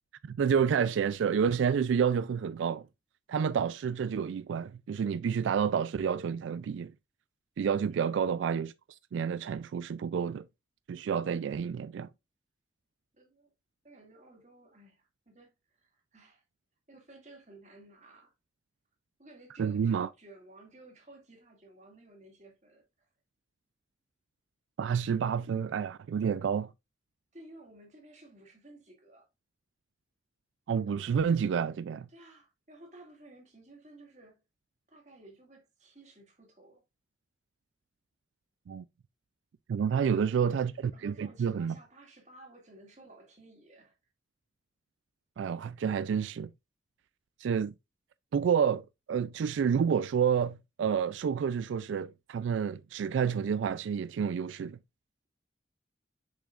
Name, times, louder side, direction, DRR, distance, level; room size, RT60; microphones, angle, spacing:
voice 1, 0.2-2.9 3.3-6.9 7.6-8.7 9.1-10.4 10.9-12.1 19.6-20.1 24.8-26.7 30.7-32.1 38.7-38.8 39.7-40.7 41.0-41.8 45.4-46.5 47.4-47.7 48.3-54.8, right 7 dB, 90° right, 0.3 m, -29 dB
voice 2, 7.9-8.3 13.1-13.5 13.8-16.4 16.9-18.3 19.2-23.1 27.3-29.3 32.1-34.4 34.9-36.8 39.9-40.6 40.9-43.9, right 2 dB, 40° right, 2.2 m, -55 dB
6.8 x 6.1 x 2.4 m
head